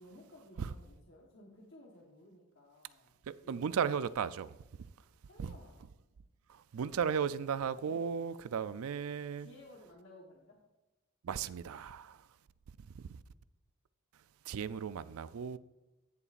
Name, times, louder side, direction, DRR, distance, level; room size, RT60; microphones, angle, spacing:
voice 1, 0.0-3.2 3.4-3.9 5.2-5.9 7.7-8.2 9.4-10.6, left 1 dB, 55° left, 1.1 m, -57 dB
voice 2, 3.3-4.5 5.4-5.5 6.5-9.5 11.2-12.3 12.9-13.2 14.5-15.6, right 7 dB, 75° right, 0.4 m, -36 dB
15.5 x 6.9 x 2.5 m
head